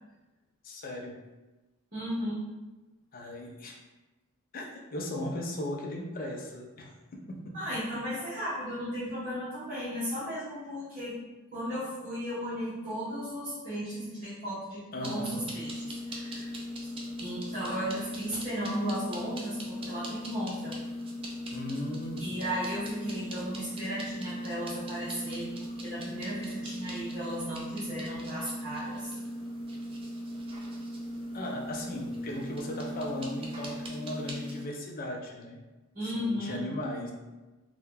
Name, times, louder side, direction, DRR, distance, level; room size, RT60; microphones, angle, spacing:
voice 1, 0.6-1.2 3.1-3.8 4.5-4.7 4.9-7.6 14.9-15.4 21.5-22.3 31.3-35.6 36.0-37.1, left 1 dB, 40° left, 0 dB, 0.4 m, -37 dB
voice 2, 1.9-2.4 7.5-11.2 11.5-16.6 16.8-16.9 17.2-20.7 22.2-29.2 35.9-36.6, equal, 40° right, -11 dB, 0.9 m, -35 dB
sound 1, 15.0-34.6, equal, 25° right, 0.3 m, -38 dB
2.7 x 2.2 x 3.6 m, 1.1 s
head